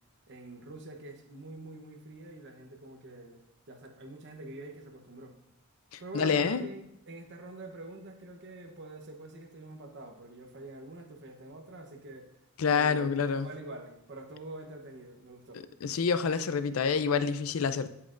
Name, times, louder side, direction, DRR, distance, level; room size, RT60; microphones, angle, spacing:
voice 1, 0.3-3.4 3.7-5.4 6.0-12.3 12.7-15.7, right 2 dB, 60° right, 4 dB, 1.0 m, -46 dB
voice 2, 5.9-6.7 12.6-13.5 15.8-17.9, left 5 dB, 85° left, 12 dB, 0.5 m, -27 dB
8.3 x 7.5 x 2.5 m, 0.80 s
head